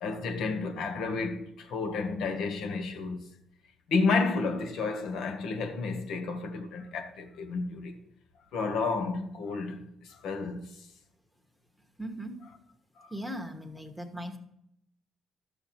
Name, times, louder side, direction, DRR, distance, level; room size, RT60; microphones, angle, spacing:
voice 1, 0.0-3.2 3.9-8.0 8.5-10.7 13.0-13.1, left 4 dB, 75° left, 1.4 m, -31 dB
voice 2, 12.0-12.4 13.1-14.4, equal, ahead, 1.3 m, -38 dB
12.0 x 7.4 x 4.3 m
cardioid pair, 105°, 0 cm